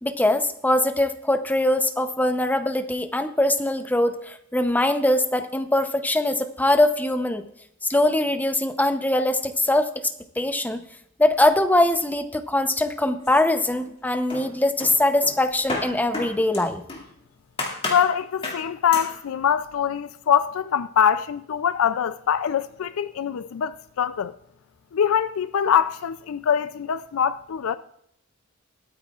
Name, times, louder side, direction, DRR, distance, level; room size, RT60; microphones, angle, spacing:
voice 1, 0.0-7.4 7.9-10.1 10.4-10.8 11.2-16.8, left 1 dB, 10° left, 0.7 m, -22 dB
sound 1, 13.2-14.0 14.3-17.1 17.6-18.1 18.4-18.7 18.9-19.2, left 2 dB, 25° left, 2.3 m, -32 dB
voice 2, 17.9-24.3 24.9-27.8, left 8 dB, 70° left, 0.4 m, -23 dB
22.5 x 9.2 x 2.4 m
head